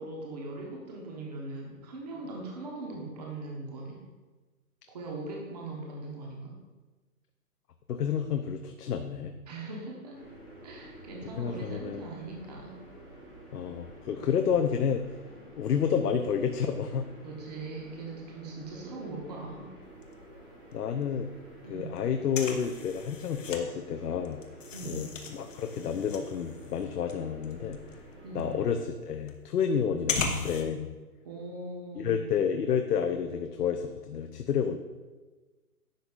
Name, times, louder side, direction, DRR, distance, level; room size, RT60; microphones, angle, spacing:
voice 1, 0.0-4.0 4.9-6.6 9.5-10.2 10.6-12.8 17.2-19.7 21.6-22.0 24.7-25.0 28.2-28.5 29.7-29.9 31.2-32.3, right 3 dB, 25° right, -1 dB, 1.0 m, -40 dB
voice 2, 7.9-9.3 11.4-12.1 13.5-15.0 15.5-17.1 20.7-21.3 21.7-24.4 24.8-27.8 28.3-30.9 31.9-34.8, left 7 dB, 80° left, 6 dB, 0.7 m, -30 dB
sound 1, 10.1-28.7, right 1 dB, 5° right, 0.7 m, -50 dB
sound 2, 19.8-20.7 21.0-21.1 21.3-23.6 24.0-30.6, left 4 dB, 55° left, 1.0 m, -37 dB
10.0 x 5.4 x 2.4 m, 1.3 s
hypercardioid pair, 160°, 46 cm